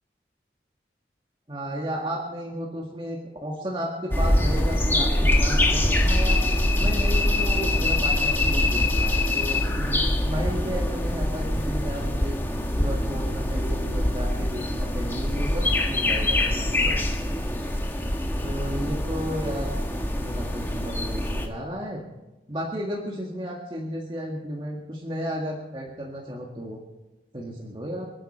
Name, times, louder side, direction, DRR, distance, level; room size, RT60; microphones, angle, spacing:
voice 1, 1.5-6.4 6.8-12.4 12.8-16.9 18.4-19.7 20.1-22.0 22.5-26.8 27.3-28.1, equal, 30° right, -2 dB, 1.9 m, -33 dB
sound 1, 4.1-21.5, left 1 dB, 10° left, 1.4 m, -24 dB
sound 2, 6.8-14.2, left 1 dB, 75° left, 1.8 m, -34 dB
28.5 x 9.8 x 4.4 m, 1.1 s
head